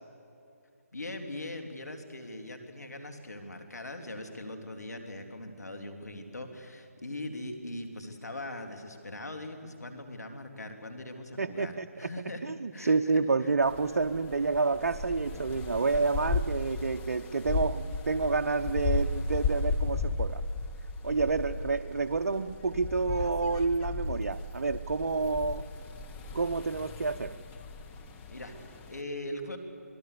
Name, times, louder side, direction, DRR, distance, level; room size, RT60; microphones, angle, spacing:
voice 1, 0.9-12.4 12.7-13.2 28.3-29.6, left 1 dB, 85° left, 5 dB, 3.2 m, -41 dB
voice 2, 11.4-12.1 12.4-20.4 21.0-25.7 26.3-27.4, right 4 dB, 65° right, 7 dB, 0.8 m, -29 dB
sound 1, 13.6-29.0, left 3 dB, 15° left, 1.2 m, -35 dB
27.0 x 20.5 x 6.9 m, 2.6 s
figure-of-eight pair, 150°, 9 cm